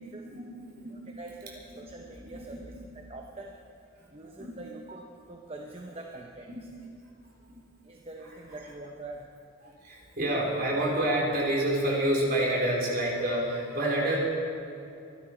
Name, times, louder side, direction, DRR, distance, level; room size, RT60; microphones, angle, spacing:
voice 1, 0.2-1.1 1.7-1.9 2.3-2.4 4.0-4.5 6.5-6.6 7.5-7.6 9.6-14.2, right 1 dB, 45° right, -3 dB, 3.8 m, -29 dB
voice 2, 0.9-3.5 4.1-6.5 7.8-9.3, right 2 dB, 30° right, 1 dB, 0.9 m, -44 dB
25.0 x 11.5 x 4.5 m, 2.7 s
head